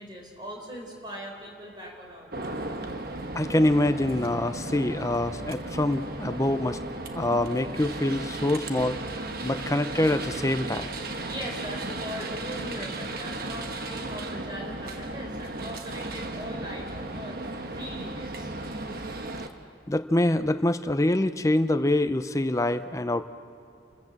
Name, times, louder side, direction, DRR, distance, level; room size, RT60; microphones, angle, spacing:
voice 1, 0.0-2.3 11.2-18.5, equal, 25° right, 0 dB, 4.0 m, -40 dB
sound 1, 2.3-19.5, right 2 dB, 55° right, 1.2 m, -35 dB
voice 2, 3.3-6.8 7.1-9.0 9.4-10.9 19.9-23.2, left 1 dB, 15° left, 10 dB, 0.6 m, -25 dB
29.0 x 14.5 x 7.4 m, 2.6 s
head